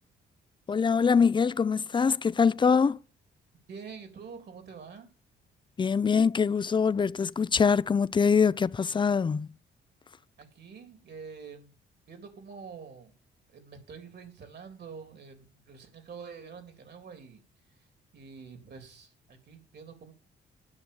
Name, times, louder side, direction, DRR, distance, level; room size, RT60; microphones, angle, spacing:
voice 1, 0.7-3.0 5.8-9.5, left 6 dB, 25° left, 0.5 m, -24 dB
voice 2, 3.7-5.1 10.4-11.8 12.1-13.1 13.5-17.4 17.7-17.9 18.1-20.1, right 5 dB, 55° right, 3.3 m, -46 dB
9.8 x 6.1 x 8.6 m
cardioid pair, 90°, 20 cm